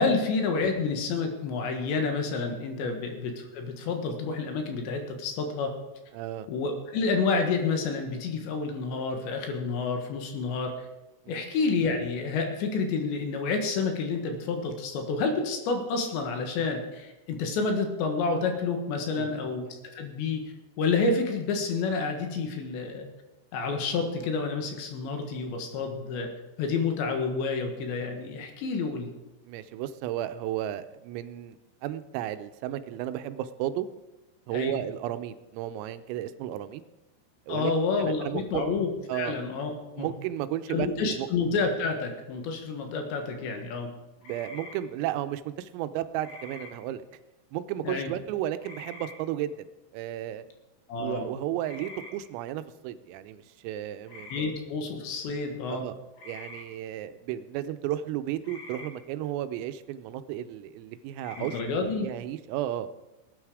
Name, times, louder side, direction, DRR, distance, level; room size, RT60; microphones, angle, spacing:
voice 1, 0.0-5.7 6.5-10.7 11.3-19.7 19.9-23.1 23.5-26.3 26.6-29.1 34.5-34.8 37.5-38.9 39.1-40.1 40.7-43.9 47.8-48.1 50.9-51.3 54.3-55.8 61.4-62.1, left 4 dB, 70° left, 4 dB, 3.4 m, -29 dB
voice 2, 6.1-6.5 11.3-11.5 19.2-19.6 25.7-25.9 29.4-33.9 34.5-36.8 37.5-37.7 38.0-38.6 39.1-39.5 40.0-41.3 44.2-47.0 47.5-49.7 49.9-50.4 51.0-54.4 55.7-56.0 56.2-62.9, right 12 dB, 90° right, 12 dB, 3.4 m, -33 dB
sound 1, 44.2-44.8 46.2-46.7 48.6-49.1 51.6-52.1 54.1-54.4 56.1-56.6 58.4-58.9 61.2-61.6, left 2 dB, 50° left, 5.3 m, -44 dB
19.0 x 9.7 x 4.9 m, 1.0 s
omnidirectional pair, 5.9 m